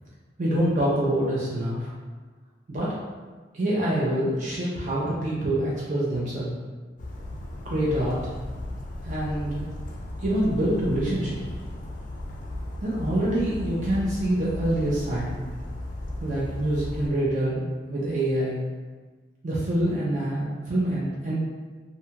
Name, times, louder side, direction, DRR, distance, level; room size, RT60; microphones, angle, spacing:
voice 1, 0.4-1.9 2.7-2.9 3.5-6.5 7.6-8.2 9.0-9.7 10.2-11.4 12.8-15.4 16.2-18.6 19.4-21.4, right 1 dB, 40° right, -7 dB, 0.4 m, -26 dB
Bird vocalization bird call bird song, 7.0-17.1, left 1 dB, 45° left, 0.3 m, -36 dB
2.6 x 2.2 x 2.8 m, 1.3 s
head